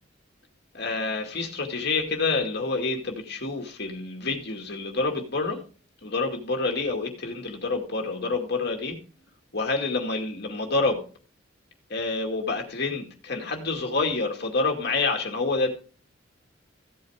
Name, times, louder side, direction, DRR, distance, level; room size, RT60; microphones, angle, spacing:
voice 1, 0.7-5.6 6.0-9.0 9.5-11.0 11.9-15.8, left 3 dB, 55° left, 2 dB, 2.2 m, -28 dB
15.5 x 8.7 x 3.6 m, 0.38 s
head